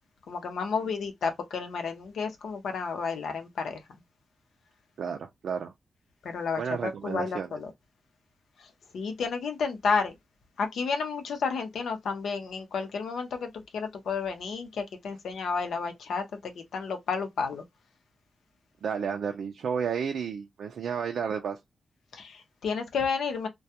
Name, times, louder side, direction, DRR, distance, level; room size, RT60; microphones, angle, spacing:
voice 1, 0.3-3.8 6.2-7.7 8.6-10.1 10.6-17.6 22.1-23.5, left 5 dB, 85° left, 0.7 m, -31 dB
voice 2, 5.0-5.7 6.6-7.5 18.8-21.6, right 6 dB, 80° right, 0.4 m, -32 dB
2.3 x 2.2 x 2.8 m
cardioid pair, 90°, 0 cm